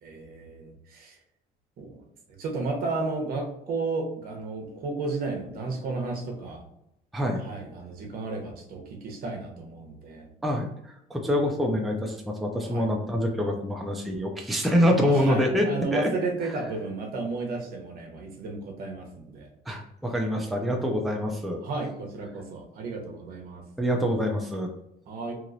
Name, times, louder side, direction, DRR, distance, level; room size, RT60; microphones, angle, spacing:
voice 1, 0.0-1.2 1.8-2.0 2.4-6.6 7.4-10.3 12.6-12.9 15.0-19.5 21.6-23.6 25.1-25.3, right 3 dB, 60° right, 1 dB, 0.8 m, -33 dB
voice 2, 10.4-16.1 19.7-21.6 23.8-24.7, equal, ahead, 1 dB, 0.4 m, -26 dB
2.9 x 2.9 x 2.5 m, 0.80 s
cardioid pair, 125°, 17 cm